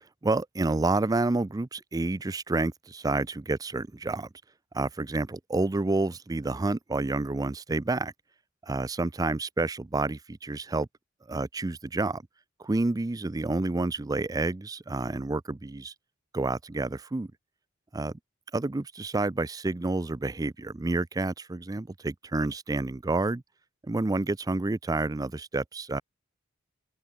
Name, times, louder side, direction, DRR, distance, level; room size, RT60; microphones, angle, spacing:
voice 1, 0.2-4.3 4.7-8.1 8.6-10.9 11.3-12.2 12.6-15.9 16.3-17.3 17.9-18.1 18.5-23.4 23.9-26.0, right 2 dB, 20° right, 0.4 m, -29 dB
head